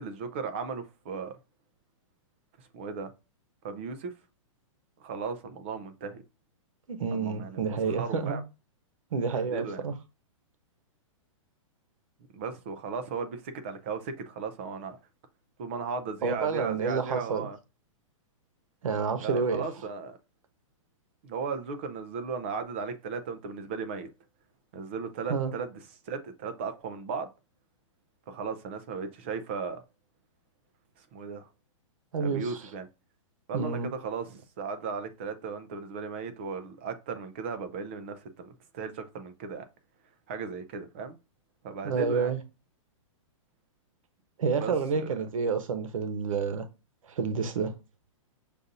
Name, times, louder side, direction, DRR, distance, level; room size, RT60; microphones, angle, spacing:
voice 1, 0.0-1.4 2.6-3.1 3.6-4.1 5.0-6.2 7.1-8.4 9.3-9.8 12.3-15.0 15.6-17.6 19.2-20.2 21.2-24.1 24.7-25.7 26.1-27.3 28.3-29.8 31.0-31.5 32.2-32.9 33.5-39.7 40.3-41.2 41.6-42.3 44.5-45.1, right 5 dB, 20° right, 0.4 m, -36 dB
voice 2, 6.9-8.4 9.1-9.9 16.2-17.5 18.8-19.6 25.3-25.5 32.1-32.6 33.5-33.9 41.8-42.4 44.4-46.6 47.1-47.7, right 5 dB, 90° right, 1.0 m, -29 dB
6.6 x 2.5 x 2.6 m
hypercardioid pair, 175°, 17 cm